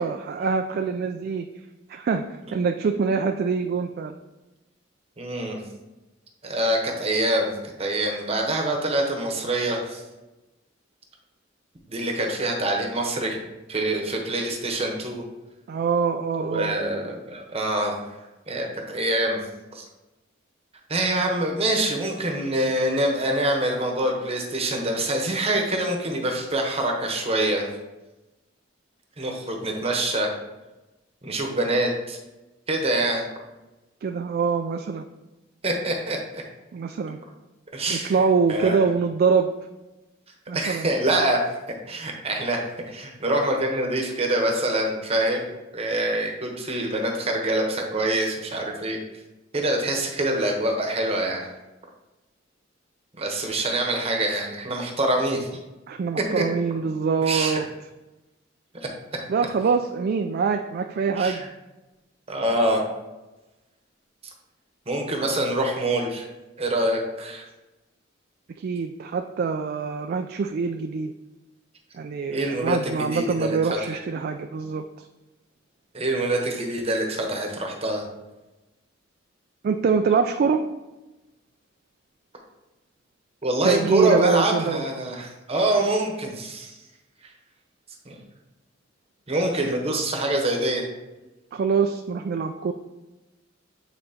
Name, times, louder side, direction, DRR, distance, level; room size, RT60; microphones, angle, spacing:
voice 1, 0.0-1.5 1.9-2.2 2.5-4.1 15.7-16.8 34.0-35.0 36.7-37.2 37.9-39.5 40.5-40.9 55.9-57.7 59.3-61.4 68.6-71.1 71.9-74.8 79.6-80.6 83.6-84.8 91.5-92.7, right 5 dB, 50° right, 6 dB, 0.3 m, -24 dB
voice 2, 5.2-5.6 6.4-7.5 7.8-10.0 11.9-13.4 13.7-15.2 16.4-18.0 18.5-19.4 19.7-19.8 20.9-27.7 29.2-30.3 31.2-32.2 32.7-33.2 35.6-36.4 37.7-38.2 38.5-38.8 40.5-41.4 41.9-42.6 42.9-45.4 45.7-49.0 49.5-51.5 53.2-55.5 56.3-56.4 57.2-57.6 61.2-61.5 62.3-62.8 64.9-66.3 66.6-67.5 72.3-73.6 73.9-74.0 75.9-78.0 83.4-86.7 87.2-87.3 88.0-88.2 89.3-90.8, right 1 dB, 30° right, 1 dB, 0.9 m, -25 dB
8.7 x 4.1 x 2.8 m, 1.1 s
head